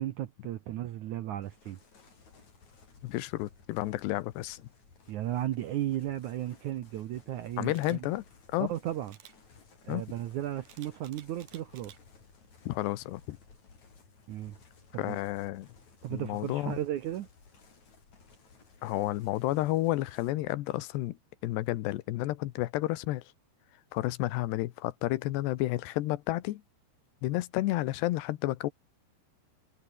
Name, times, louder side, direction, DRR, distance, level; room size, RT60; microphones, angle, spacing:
voice 1, 0.0-1.8 5.1-8.1 8.6-9.2 9.8-11.9 14.3-14.6 14.9-15.2 16.0-17.3, right 13 dB, 75° right, 1.8 m, -35 dB
sound 1, 1.4-20.3, left 4 dB, 45° left, 6.1 m, -59 dB
voice 2, 3.0-4.6 7.6-8.2 8.5-8.7 9.9-10.0 12.7-13.4 15.0-15.7 16.1-16.8 18.8-21.2 21.4-23.2 23.9-26.6 27.2-28.7, left 17 dB, 85° left, 3.2 m, -31 dB
Camera, 7.7-8.0 9.1-9.4 10.7-12.0 12.5-12.7, right 10 dB, 60° right, 2.9 m, -53 dB
omnidirectional pair, 4.7 m